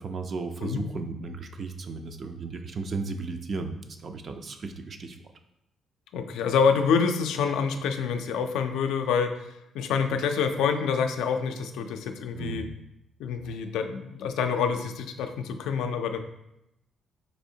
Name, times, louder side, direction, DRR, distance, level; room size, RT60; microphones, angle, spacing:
voice 1, 0.0-5.2 12.3-12.7 13.4-13.6, right 4 dB, 45° right, 7 dB, 0.4 m, -35 dB
voice 2, 6.1-9.5 9.7-12.6 13.2-16.2, left 6 dB, 90° left, 6 dB, 0.3 m, -27 dB
4.2 x 2.7 x 2.7 m, 0.86 s
cardioid pair, 90°, 0 cm